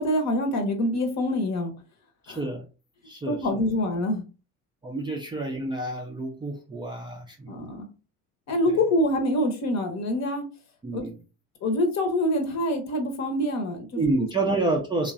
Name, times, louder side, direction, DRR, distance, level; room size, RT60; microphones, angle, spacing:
voice 1, 0.0-1.7 2.3-2.4 3.3-4.2 7.5-7.9 8.5-10.5 10.9-11.0 11.6-14.0, left 1 dB, 40° left, 0.8 m, -25 dB
voice 2, 2.2-2.7 3.0-3.4 4.8-7.6 10.8-11.2 13.9-15.1, right 2 dB, 10° right, 0.4 m, -28 dB
3.0 x 2.2 x 2.4 m
hypercardioid pair, 60°, 44 cm